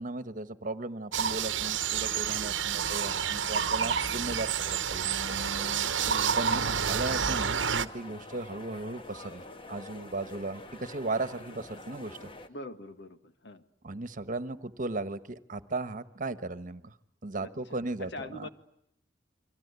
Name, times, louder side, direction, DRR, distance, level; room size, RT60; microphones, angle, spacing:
voice 1, 0.0-5.3 6.4-12.3 13.8-16.9 17.2-18.5, right 2 dB, 45° right, 12 dB, 1.3 m, -36 dB
sound 1, 1.1-7.9, right 7 dB, 80° right, 1.1 m, -29 dB
sound 2, 5.2-12.5, left 2 dB, 30° left, 1.4 m, -47 dB
voice 2, 5.9-6.7 12.5-13.6 17.4-17.5 18.0-18.5, left 1 dB, 65° left, 9 dB, 1.7 m, -44 dB
30.0 x 24.0 x 8.3 m, 0.75 s
head